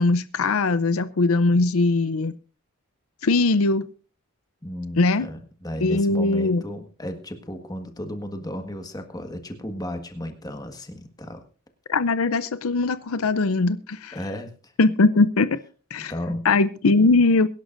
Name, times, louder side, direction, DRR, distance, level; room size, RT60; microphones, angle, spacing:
voice 1, 0.0-2.3 3.2-3.8 5.0-5.3 5.8-6.6 11.9-14.2 14.8-15.6 15.9-16.1 16.4-17.5, left 3 dB, 70° left, 14 dB, 0.6 m, -20 dB
voice 2, 4.6-11.4 14.1-14.7 16.0-16.5, left 1 dB, 15° left, 6 dB, 1.6 m, -34 dB
23.0 x 11.5 x 2.6 m, 0.37 s
head